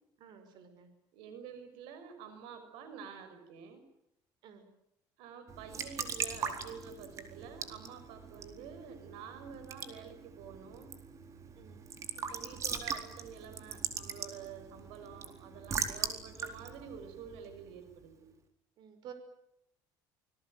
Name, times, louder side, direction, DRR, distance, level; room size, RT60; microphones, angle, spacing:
voice 1, 0.2-0.9 4.4-4.7 8.3-8.4 11.6-11.8 16.0-16.3 18.8-19.1, right 8 dB, 55° right, 8 dB, 5.7 m, -52 dB
voice 2, 1.1-3.8 5.2-10.9 12.1-18.3, right 7 dB, 80° right, 9 dB, 6.0 m, -49 dB
Raindrop / Drip / Trickle dribble, 5.5-18.0, right 6 dB, 35° right, 4.3 m, -41 dB
26.0 x 21.5 x 9.4 m, 0.80 s
cardioid pair, 130°, 9 cm